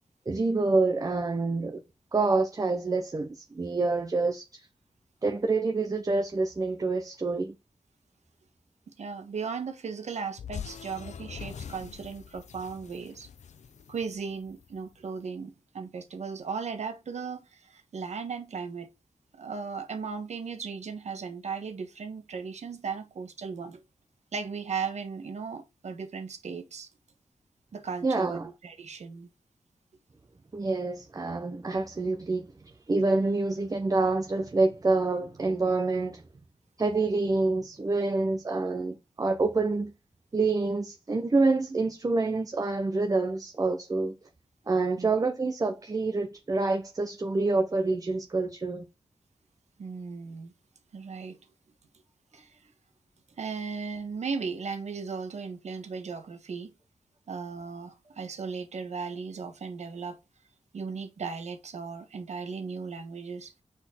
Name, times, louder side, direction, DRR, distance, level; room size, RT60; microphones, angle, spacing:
voice 1, 0.3-1.8 2.1-4.7 5.2-7.5 28.0-28.5 30.5-32.5 32.9-36.2 36.8-39.9 40.3-44.1 44.7-48.8, right 3 dB, 30° right, 0.7 m, -27 dB
voice 2, 8.9-13.3 13.9-18.9 19.3-23.8 24.3-26.9 27.7-29.3 45.0-45.1 49.8-50.5 50.9-51.4 52.3-52.5 53.4-56.7 57.3-60.2 60.7-63.5, right 5 dB, 80° right, 1.2 m, -36 dB
sound 1, 10.4-14.8, left 7 dB, 85° left, 0.7 m, -43 dB
6.0 x 4.3 x 4.3 m
wide cardioid pair, 90°, 12 cm